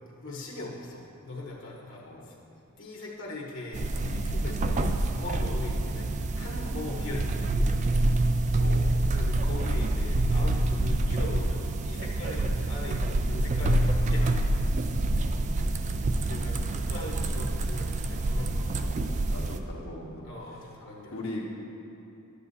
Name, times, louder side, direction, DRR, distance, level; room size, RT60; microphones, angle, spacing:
voice 1, 0.2-2.3 2.8-6.1 6.3-7.5 9.1-14.8 16.0-18.7 20.2-21.1, left 2 dB, 60° left, -3 dB, 1.2 m, -39 dB
sound 1, 3.7-19.6, right 2 dB, 35° right, 0.3 m, -27 dB
voice 2, 8.6-9.0 15.2-16.4 18.8-18.9 19.3-20.3 20.6-20.7 21.1-21.4, left 1 dB, 80° left, -3 dB, 1.4 m, -41 dB
11.5 x 8.1 x 2.7 m, 2.8 s
head